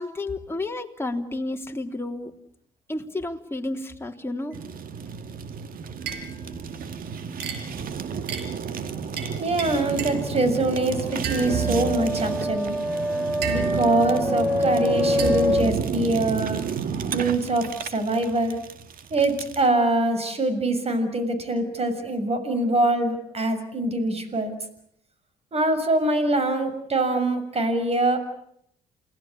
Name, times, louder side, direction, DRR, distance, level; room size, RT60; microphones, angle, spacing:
voice 1, 0.0-2.3 2.9-4.6, left 2 dB, 15° left, 3 dB, 3.5 m, -31 dB
Fire, 4.5-19.7, right 6 dB, 55° right, 2.1 m, -32 dB
sound 1, 6.0-10.7 11.2-17.8, right 7 dB, 75° right, 5.3 m, -35 dB
voice 2, 9.4-12.8 13.5-16.6 17.1-18.6 19.1-24.5 25.5-28.2, right 2 dB, 35° right, 10 dB, 6.7 m, -24 dB
sound 2, 10.0-15.7, left 1 dB, 5° right, 3.3 m, -26 dB
28.5 x 19.5 x 8.5 m, 0.71 s
supercardioid pair, 70°, 17 cm